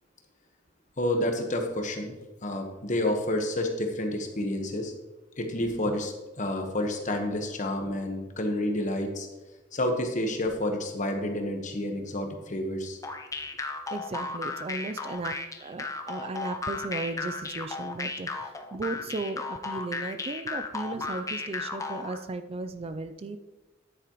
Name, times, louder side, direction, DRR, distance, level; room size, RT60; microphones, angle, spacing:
voice 1, 1.0-2.1 2.4-4.9 5.4-9.3 9.7-13.0, left 1 dB, 40° left, 4 dB, 1.2 m, -29 dB
sound 1, 13.0-22.2, left 3 dB, 20° left, 0.6 m, -35 dB
voice 2, 13.9-23.4, right 3 dB, 30° right, 10 dB, 0.4 m, -36 dB
9.8 x 8.7 x 3.0 m, 1.1 s
head